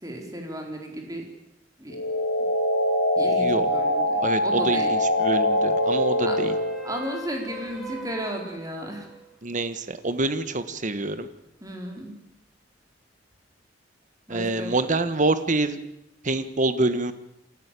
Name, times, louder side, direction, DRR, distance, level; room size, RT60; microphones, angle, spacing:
voice 1, 0.0-1.2 1.8-2.0 3.2-4.9 6.3-6.4 6.8-9.1 11.6-12.1 14.3-14.8, right 1 dB, 20° right, 2 dB, 4.2 m, -34 dB
sound 1, 1.9-6.9, left 1 dB, 60° left, 5.3 m, -23 dB
voice 2, 3.2-3.7 4.2-6.6 9.4-11.3 14.3-15.8 16.2-17.1, right 2 dB, 45° right, 12 dB, 1.4 m, -26 dB
sound 2, 3.6-9.2 13.3-13.4, left 1 dB, ahead, 6.0 m, -43 dB
28.0 x 13.5 x 8.4 m, 0.85 s
head